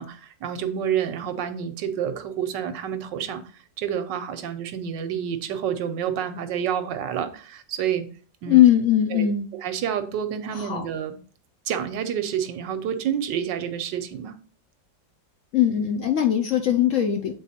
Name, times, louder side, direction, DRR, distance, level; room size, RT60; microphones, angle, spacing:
voice 1, 0.0-3.4 3.8-8.1 8.4-8.6 9.1-9.3 9.6-11.2 11.7-14.3, right 8 dB, 85° right, 10 dB, 1.4 m, -28 dB
voice 2, 8.5-9.5 10.5-10.9 15.5-17.3, left 11 dB, 60° left, 5 dB, 0.8 m, -20 dB
8.2 x 3.9 x 4.2 m, 0.41 s
omnidirectional pair, 1.9 m